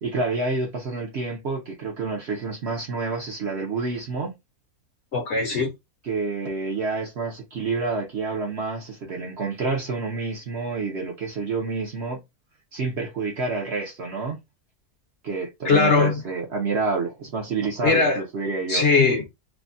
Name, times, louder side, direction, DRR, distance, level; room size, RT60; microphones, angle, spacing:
voice 1, 0.0-4.3 6.0-12.2 12.7-14.4 15.2-18.8, right 3 dB, 55° right, 0.8 m, -28 dB
voice 2, 5.1-5.7 15.6-16.2 17.8-18.2 18.7-19.3, left 4 dB, 55° left, 0.9 m, -20 dB
3.4 x 2.2 x 2.5 m
omnidirectional pair, 1.7 m